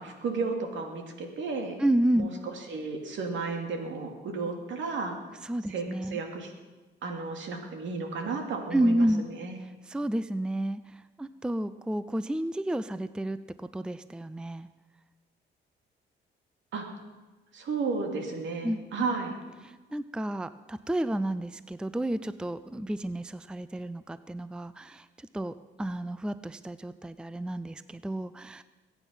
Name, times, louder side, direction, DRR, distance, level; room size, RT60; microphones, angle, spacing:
voice 1, 0.0-1.8 2.1-5.2 5.7-5.9 6.1-6.5 7.0-9.1 9.4-9.6 16.7-16.9 17.5-19.3, right 4 dB, 70° right, 3 dB, 2.7 m, -33 dB
voice 2, 1.8-2.3 5.4-6.2 8.7-9.2 9.8-14.7 18.6-18.8 19.6-28.6, right 1 dB, 5° right, 14 dB, 0.5 m, -31 dB
21.0 x 9.3 x 5.6 m, 1.2 s
cardioid pair, 90°, 20 cm